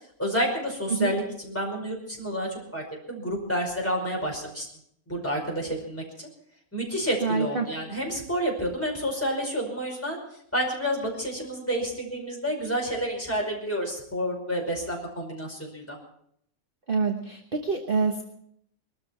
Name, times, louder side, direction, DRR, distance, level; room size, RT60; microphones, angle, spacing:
voice 1, 0.2-4.7 5.1-6.3 6.7-10.2 10.5-16.0, equal, 10° left, -1 dB, 5.2 m, -29 dB
voice 2, 7.2-7.7 16.9-18.2, right 4 dB, 40° right, 2 dB, 1.4 m, -26 dB
22.5 x 13.5 x 4.4 m, 0.69 s
omnidirectional pair, 1.5 m